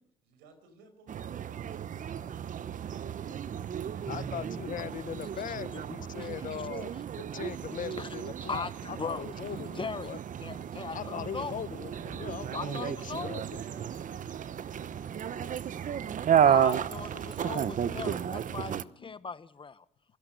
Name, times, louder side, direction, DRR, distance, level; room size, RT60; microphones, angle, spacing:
voice 1, 0.0-3.5 5.6-5.7 11.6-15.4 15.7-16.9, right 3 dB, 85° right, 8 dB, 5.6 m, -58 dB
sound 1, 1.1-18.8, right 9 dB, 50° right, 1.0 m, -32 dB
voice 2, 4.1-10.2 10.9-13.6 17.9-18.3 19.0-19.1, left 9 dB, 55° left, 17 dB, 1.1 m, -40 dB
Bowed string instrument, 4.1-6.9, right 1 dB, 15° left, 2.8 m, -47 dB
voice 3, 6.0-6.4 6.9-7.0 8.0-8.1 8.4-10.1 10.4-11.5 12.5-13.3 16.4-19.8, left 5 dB, 30° left, 14 dB, 1.4 m, -39 dB
24.5 x 17.0 x 6.7 m, 0.71 s
supercardioid pair, 65°, 16 cm